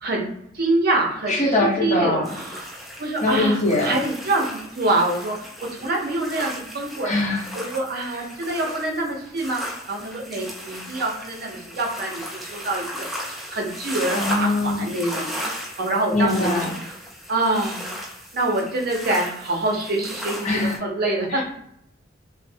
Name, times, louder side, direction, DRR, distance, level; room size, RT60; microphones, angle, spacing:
voice 1, 0.0-1.5 1.8-2.7 3.0-5.3 5.7-7.1 7.5-16.5 17.3-17.8 18.3-21.4, right 2 dB, 50° right, 1 dB, 0.6 m, -25 dB
voice 2, 1.3-2.3 3.2-4.0 7.0-7.4 14.1-14.9 16.1-16.8 20.4-20.8 21.3-21.4, left 2 dB, 40° left, -2 dB, 0.8 m, -22 dB
sound 1, 2.2-20.8, equal, ahead, 0.4 m, -36 dB
3.0 x 2.0 x 2.7 m, 0.74 s
head